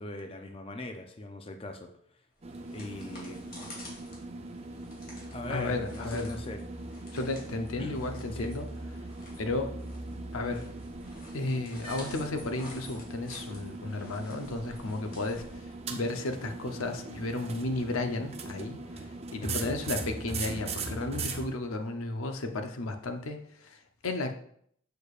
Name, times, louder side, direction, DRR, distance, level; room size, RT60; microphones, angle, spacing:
voice 1, 0.0-1.9 2.7-3.6 5.3-6.6 7.8-8.0 8.3-8.5 19.4-19.7, left 2 dB, 25° left, 5 dB, 0.5 m, -40 dB
sound 1, 2.4-16.1, left 1 dB, 45° left, 2.2 m, -51 dB
sound 2, 2.4-21.5, right 3 dB, 30° right, 0.6 m, -40 dB
voice 2, 5.5-6.4 7.1-8.7 9.0-9.1 9.4-9.7 10.3-10.7 11.3-24.3, left 2 dB, 85° left, 6 dB, 0.7 m, -34 dB
6.7 x 6.5 x 2.4 m, 0.66 s
head